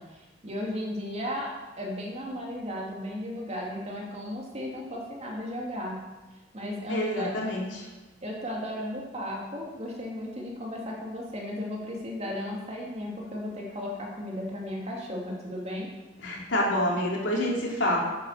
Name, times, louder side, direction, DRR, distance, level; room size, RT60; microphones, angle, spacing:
voice 1, 0.0-6.0 6.5-7.4 8.2-15.9, left 1 dB, 35° right, -2 dB, 2.5 m, -35 dB
voice 2, 6.9-7.8 16.2-18.0, left 1 dB, 70° left, -4 dB, 3.3 m, -27 dB
9.3 x 8.3 x 6.7 m, 1.1 s
head